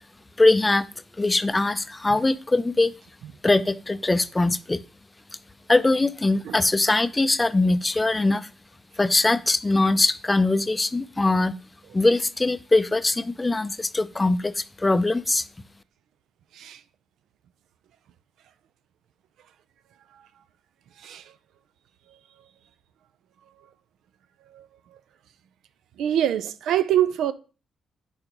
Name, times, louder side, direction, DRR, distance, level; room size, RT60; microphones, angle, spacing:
voice 1, 0.4-0.9 1.2-2.9 3.4-4.8 5.7-8.5 9.0-11.5 11.9-15.5, left 2 dB, 20° left, 0.4 m, -22 dB
voice 2, 21.0-21.3 22.1-22.2 24.5-25.0 26.0-27.3, right 11 dB, 80° right, 0.4 m, -25 dB
4.8 x 4.4 x 5.1 m
cardioid pair, 85°, 0 cm